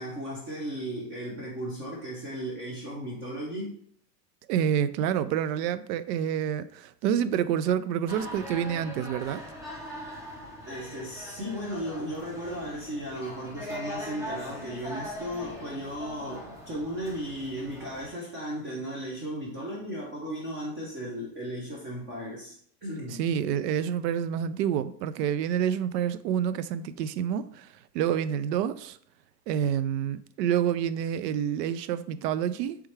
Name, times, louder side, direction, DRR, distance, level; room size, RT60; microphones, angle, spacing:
voice 1, 0.0-3.7 10.7-23.2, equal, 25° right, 0.9 m, -36 dB
voice 2, 4.5-9.4 23.2-29.0 29.5-32.8, right 9 dB, 75° right, 0.5 m, -28 dB
sound 1, 8.1-18.1, equal, 5° right, 0.5 m, -41 dB
4.6 x 3.4 x 3.1 m
supercardioid pair, 140°, 50 cm